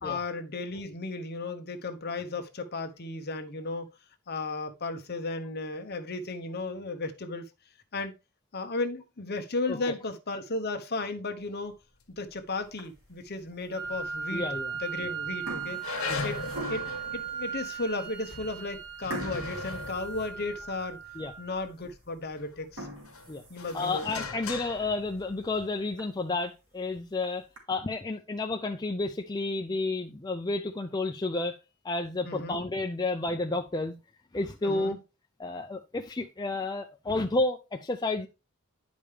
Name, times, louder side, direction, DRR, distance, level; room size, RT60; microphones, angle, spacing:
voice 1, 0.0-3.9 4.3-7.4 7.9-8.1 8.5-11.7 12.2-14.5 14.8-16.4 16.7-21.0 21.4-22.9 23.5-24.3 32.2-32.6 34.6-35.0, left 3 dB, 50° left, 1.0 m, -35 dB
sound 1, 12.7-13.2 13.8-13.9 14.7-15.0 15.2-17.1 17.7-17.8 18.2-18.3 19.1-20.9 21.3-21.4 21.9-22.0 22.6-24.2 24.7-24.8 25.2-25.3 25.6-25.7 26.0-26.1 27.0-27.6, right 1 dB, 90° right, 2.6 m, -42 dB
Wind instrument woodwind instrument, 13.7-21.7, right 7 dB, 15° right, 3.5 m, -38 dB
sound 2, 13.8-14.6 15.0-15.1 15.7-21.9 22.4-25.8, left 3 dB, 70° left, 1.5 m, -39 dB
voice 2, 14.3-14.7 16.1-16.3 21.2-21.3 23.3-23.4 23.7-31.6 31.8-33.9 34.3-35.0 35.4-38.3, left 2 dB, 20° left, 0.5 m, -31 dB
9.8 x 5.2 x 3.3 m
head